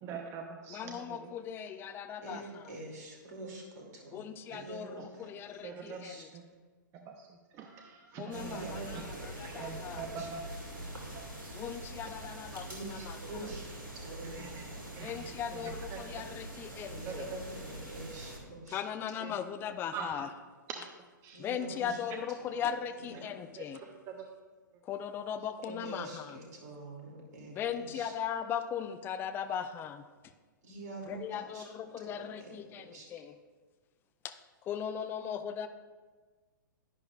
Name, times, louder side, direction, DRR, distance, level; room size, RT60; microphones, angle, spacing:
voice 1, 0.0-1.3 4.5-4.7 5.0-5.1 5.6-6.4 6.9-8.8 9.6-10.4 10.7-11.6 14.2-14.6 15.0-16.3 17.1-17.4 19.2-19.3 19.9-20.1 20.7-20.8 21.2-21.4 23.6-23.7 24.1-24.3, right 6 dB, 30° right, 3 dB, 0.7 m, -44 dB
voice 2, 0.7-2.7 4.1-6.3 8.2-10.1 11.5-13.2 15.0-17.3 18.7-20.3 21.4-23.8 24.8-26.4 27.5-30.1 31.1-33.3 34.2-34.3 34.6-35.7, left 8 dB, 20° left, 10 dB, 0.4 m, -38 dB
voice 3, 2.2-5.6 6.0-6.3 8.3-10.3 12.7-14.9 16.9-19.0 21.3-22.0 22.4-22.6 23.0-23.3 25.6-28.1 30.6-31.7 32.0-32.5 32.9-33.1, right 2 dB, 60° right, -1 dB, 2.6 m, -46 dB
sound 1, 8.3-18.4, right 1 dB, 80° right, 2.1 m, -44 dB
10.5 x 10.5 x 2.4 m, 1.4 s
figure-of-eight pair, 110°, 11 cm